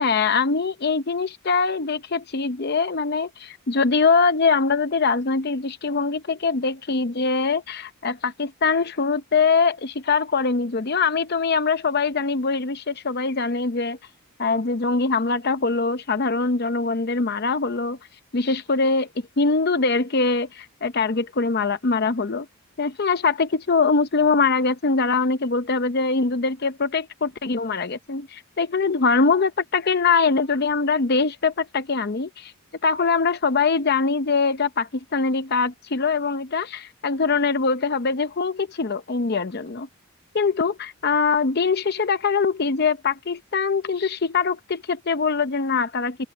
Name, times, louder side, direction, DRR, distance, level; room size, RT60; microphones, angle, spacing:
voice 1, 0.0-14.0 14.4-18.0 18.3-19.1 19.4-22.5 22.8-32.5 32.8-39.9 40.3-46.3, left 4 dB, 45° left, 0.7 m, -23 dB
open air
head